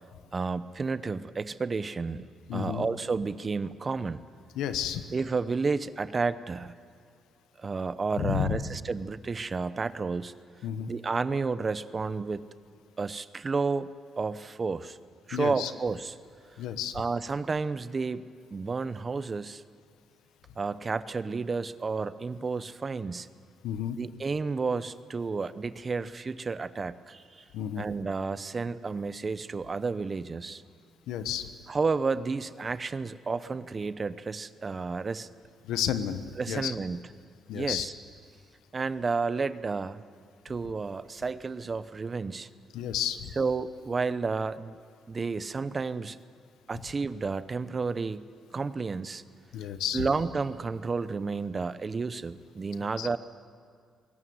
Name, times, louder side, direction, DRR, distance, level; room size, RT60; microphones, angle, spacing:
voice 1, 0.3-2.3 2.5-4.2 5.1-6.7 7.6-10.3 10.9-12.5 13.0-13.9 14.2-15.0 15.3-16.1 16.9-18.2 18.5-19.6 20.6-23.3 24.0-27.4 27.8-30.6 31.7-35.3 36.4-37.0 37.5-37.9 38.7-40.0 40.4-42.5 43.4-44.7 45.1-46.2 46.7-48.3 48.5-49.2 49.9-53.2, right 4 dB, 35° right, 15 dB, 0.8 m, -31 dB
voice 2, 2.5-2.9 4.5-5.0 8.2-8.6 10.6-10.9 15.3-15.7 16.6-16.9 23.6-24.0 27.5-27.8 31.1-31.5 35.6-36.7 37.5-37.9 42.7-43.3 49.5-50.0 53.0-53.1, left 10 dB, 90° left, 10 dB, 1.2 m, -31 dB
21.0 x 17.5 x 9.5 m, 2.2 s
cardioid pair, 90°, 0 cm